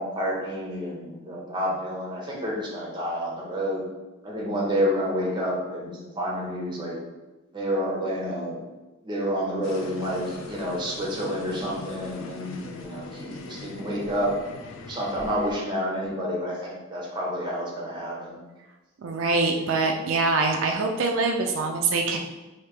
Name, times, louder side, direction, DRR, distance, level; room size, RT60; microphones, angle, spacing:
voice 1, 0.0-3.8 4.2-7.0 7.5-8.6 9.0-14.3 14.9-18.4, equal, 20° right, -3 dB, 0.8 m, -29 dB
sound 1, 9.6-15.6, left 2 dB, 75° left, 0.4 m, -40 dB
voice 2, 19.0-22.2, right 3 dB, 80° right, 3 dB, 0.4 m, -24 dB
3.3 x 2.7 x 3.3 m, 1.1 s
head